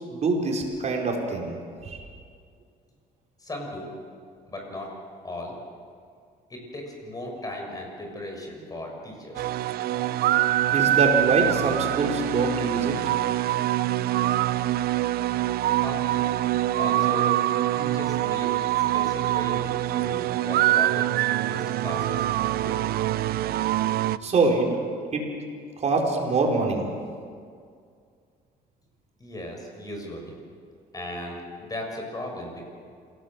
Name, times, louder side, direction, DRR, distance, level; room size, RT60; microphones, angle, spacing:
voice 1, 0.1-1.6 1.9-2.0 10.7-13.0 24.2-24.7 25.1-25.3 25.8-26.9, right 3 dB, 40° right, 0 dB, 5.2 m, -24 dB
voice 2, 3.4-3.9 4.5-4.9 5.2-5.6 6.5-9.5 15.8-16.3 16.8-17.4 17.7-18.5 18.9-21.1 21.4-22.8 29.2-30.3 30.9-32.6, left 1 dB, 20° left, 1 dB, 6.7 m, -37 dB
sound 1, 9.3-24.2, right 14 dB, 65° right, 0.6 m, -24 dB
27.5 x 18.0 x 7.6 m, 2.2 s
cardioid pair, 110°, 17 cm